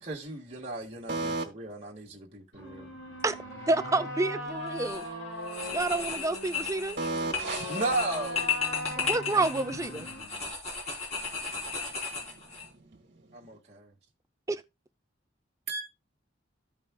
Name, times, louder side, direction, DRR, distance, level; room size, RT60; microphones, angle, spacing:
voice 1, 0.0-3.0 7.7-8.5 13.3-13.9, right 2 dB, 35° right, 1.8 m, -35 dB
voice 2, 1.1-1.4 7.0-7.7 15.7-15.8, right 3 dB, 55° right, 1.7 m, -31 dB
sound 1, 2.5-10.5, equal, 80° left, 6.5 m, -39 dB
voice 3, 3.7-5.0 5.7-7.0 9.0-10.1 14.5-14.6, right 2 dB, 15° right, 0.5 m, -29 dB
sound 2, 4.7-5.1 5.4-12.7, left 5 dB, 35° left, 3.6 m, -35 dB
14.5 x 5.4 x 2.3 m
head